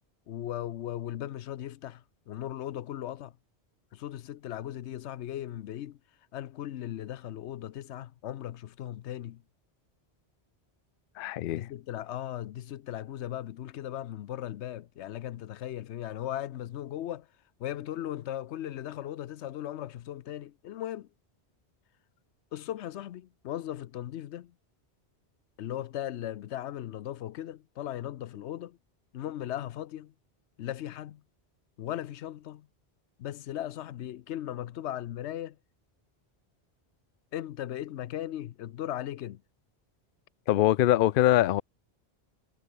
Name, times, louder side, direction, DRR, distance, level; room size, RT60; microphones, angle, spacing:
voice 1, 0.3-3.3 3.9-6.0 6.3-9.4 11.5-17.3 17.6-21.1 22.5-24.5 25.6-28.8 29.1-30.1 30.6-31.2 31.8-32.7 33.2-35.6 37.3-39.4, left 12 dB, 90° left, 0.9 m, -37 dB
voice 2, 11.2-11.7 40.5-41.6, left 13 dB, 60° left, 0.6 m, -23 dB
omnidirectional pair, 1.1 m